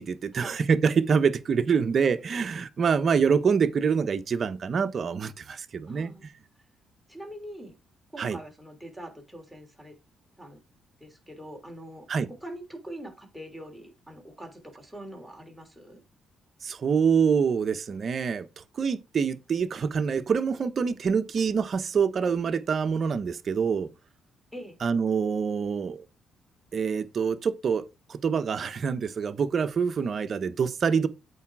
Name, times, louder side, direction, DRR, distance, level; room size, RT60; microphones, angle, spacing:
voice 1, 0.0-6.1 8.2-8.4 12.1-12.3 16.6-23.9 24.8-26.0 26.7-31.1, right 6 dB, 50° right, 0.9 m, -26 dB
voice 2, 5.9-6.2 7.1-7.7 8.1-10.0 10.4-10.6 11.0-16.0 24.5-24.8, right 1 dB, ahead, 3.2 m, -43 dB
8.4 x 4.9 x 4.8 m
cardioid pair, 90°, 0 cm